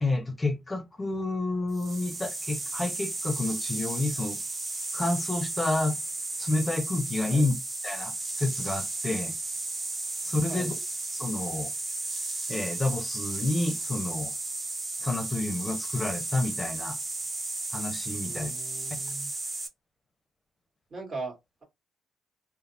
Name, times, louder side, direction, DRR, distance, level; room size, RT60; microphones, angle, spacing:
voice 1, 0.0-4.4 4.9-6.0 6.4-7.6 7.8-8.1 8.4-9.3 10.2-10.8 11.1-11.7 12.5-14.3 15.0-17.0 17.7-18.5, left 2 dB, 20° left, 0.6 m, -29 dB
sound 1, 1.7-19.7, right 2 dB, 25° right, 0.7 m, -34 dB
voice 2, 18.2-19.3 20.9-21.6, right 3 dB, 45° right, 1.7 m, -39 dB
3.1 x 2.1 x 2.7 m
cardioid pair, 90°, 0 cm